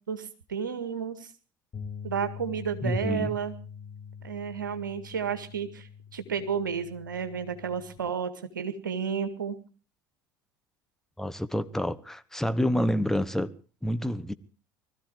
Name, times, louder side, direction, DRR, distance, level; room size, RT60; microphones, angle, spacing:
voice 1, 0.1-1.3 2.0-3.5 4.2-9.5, right 7 dB, 85° right, 1.9 m, -32 dB
sound 1, 1.7-8.0, left 7 dB, 35° left, 6.2 m, -44 dB
voice 2, 2.8-3.3 11.2-13.5 13.8-14.3, equal, 5° left, 1.2 m, -28 dB
21.0 x 14.0 x 4.7 m
figure-of-eight pair, 70°, 10 cm